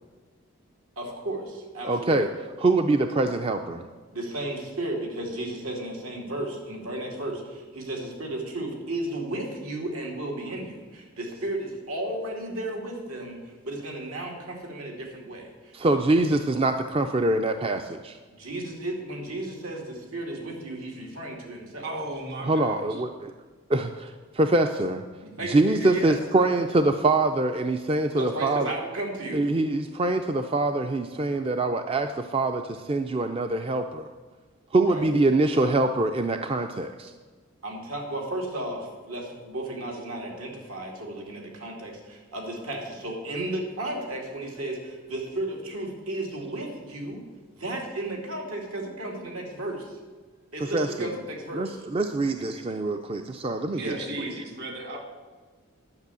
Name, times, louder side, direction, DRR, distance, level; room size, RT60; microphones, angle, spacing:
voice 1, 1.0-2.2 4.1-15.7 18.4-21.9 25.2-26.1 28.2-29.5 34.8-35.0 37.6-47.2 47.5-50.0 50.5-51.8 53.7-54.4, right 1 dB, 80° right, 0 dB, 2.6 m, -34 dB
voice 2, 1.8-2.3 2.6-3.8 15.7-18.2 22.4-23.3 23.7-25.0 25.4-28.7 29.3-34.1 34.7-37.1 50.6-51.1 51.5-53.9, right 2 dB, 25° right, 7 dB, 0.4 m, -24 dB
voice 3, 21.8-23.0 53.8-55.0, right 2 dB, 50° right, 3 dB, 1.6 m, -36 dB
11.0 x 6.1 x 8.3 m, 1.4 s
head